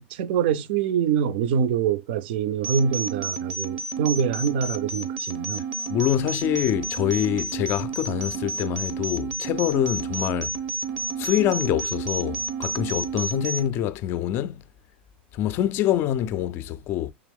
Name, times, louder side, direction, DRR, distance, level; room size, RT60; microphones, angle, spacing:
voice 1, 0.0-5.6, right 7 dB, 65° right, 0.5 m, -25 dB
sound 1, 2.6-13.7, right 3 dB, 85° right, 0.9 m, -31 dB
voice 2, 5.9-10.6 11.2-14.6 15.3-17.1, left 12 dB, 40° left, 0.3 m, -25 dB
3.5 x 3.0 x 3.4 m
supercardioid pair, 125°, 6 cm